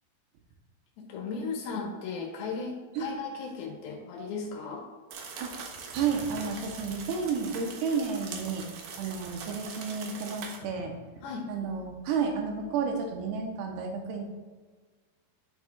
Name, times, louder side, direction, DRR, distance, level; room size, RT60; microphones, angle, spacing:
voice 1, 1.0-4.9 11.2-11.5, left 4 dB, 75° left, 0 dB, 3.1 m, -36 dB
sound 1, 5.1-10.6, right 5 dB, 70° right, 2.3 m, -42 dB
voice 2, 5.9-8.6 9.0-10.9 11.5-14.2, right 5 dB, 85° right, 2 dB, 2.8 m, -31 dB
11.5 x 7.2 x 2.4 m, 1.5 s
omnidirectional pair, 4.5 m